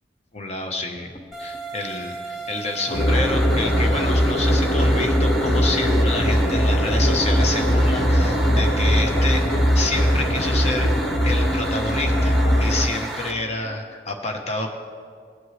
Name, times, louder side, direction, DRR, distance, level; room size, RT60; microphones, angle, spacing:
voice 1, 0.3-1.1 1.4-10.9 11.2-14.7, left 2 dB, 40° left, 3 dB, 0.9 m, -28 dB
sound 1, 1.3-13.3, right 1 dB, ahead, 1.3 m, -33 dB
sound 2, 2.9-12.9, equal, 75° left, 1.3 m, -20 dB
19.5 x 7.8 x 3.2 m, 2.1 s
head